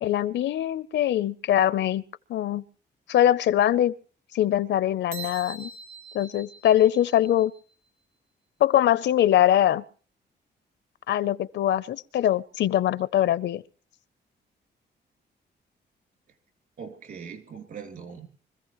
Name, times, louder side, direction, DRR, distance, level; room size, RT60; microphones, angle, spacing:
voice 1, 0.0-2.0 2.3-2.6 3.1-3.9 4.3-5.7 6.1-7.5 8.6-9.8 11.1-13.6, left 11 dB, 80° left, 0.6 m, -22 dB
sound 1, 5.1-7.7, right 4 dB, 85° right, 2.2 m, -43 dB
voice 2, 16.8-18.3, right 6 dB, 55° right, 3.1 m, -41 dB
25.0 x 15.0 x 3.1 m
wide cardioid pair, 170°, 18 cm